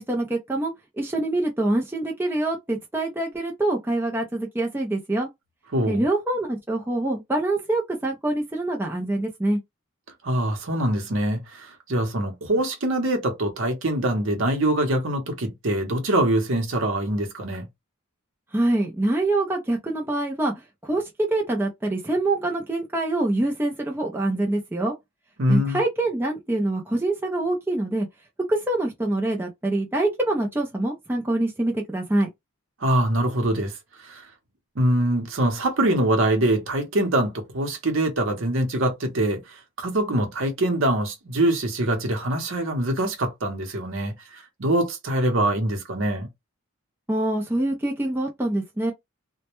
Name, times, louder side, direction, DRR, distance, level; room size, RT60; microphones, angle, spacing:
voice 1, 0.0-5.3 5.9-9.6 18.5-20.5 20.8-24.9 25.5-28.1 28.5-32.3 47.1-48.9, right 2 dB, 10° right, 0.4 m, -25 dB
voice 2, 5.7-6.0 10.2-17.7 25.4-25.8 32.8-34.3 34.8-46.3, right 1 dB, 60° right, 0.7 m, -24 dB
2.1 x 2.1 x 2.9 m
head